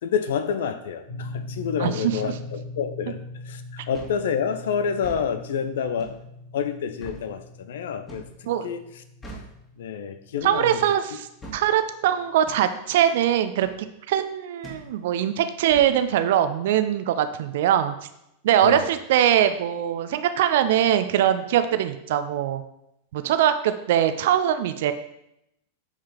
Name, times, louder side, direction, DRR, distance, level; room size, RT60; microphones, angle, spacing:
voice 1, 0.0-3.2 3.4-6.2 6.5-8.8 9.8-10.8 18.6-18.9, left 7 dB, 60° left, 10 dB, 0.8 m, -28 dB
sound 1, 1.1-11.2, left 2 dB, 75° left, 3.2 m, -40 dB
voice 2, 1.8-2.3 8.5-8.7 10.4-17.9 18.4-22.6 23.1-24.9, right 10 dB, 55° right, 10 dB, 0.7 m, -22 dB
sound 2, 3.9-4.2 4.9-5.3 6.0-6.2 7.0-7.3 8.1-8.4 9.2-9.5 10.4-10.6 11.4-11.6 12.5-12.6 13.6-13.8 14.6-14.9 15.7-15.9, right 1 dB, 20° left, 2.5 m, -41 dB
9.1 x 4.9 x 5.8 m, 0.82 s
figure-of-eight pair, 90°, 0 cm